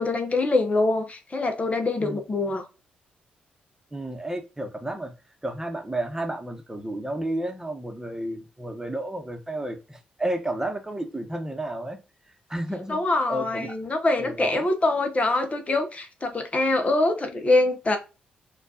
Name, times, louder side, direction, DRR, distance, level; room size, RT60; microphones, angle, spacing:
voice 1, 0.0-2.7 12.9-18.0, left 2 dB, 35° left, 0.8 m, -24 dB
voice 2, 3.9-5.1 5.4-12.0 12.5-13.0 13.3-13.7 14.2-14.7, right 1 dB, 15° right, 1.0 m, -32 dB
4.4 x 2.4 x 2.7 m
hypercardioid pair, 45°, 4 cm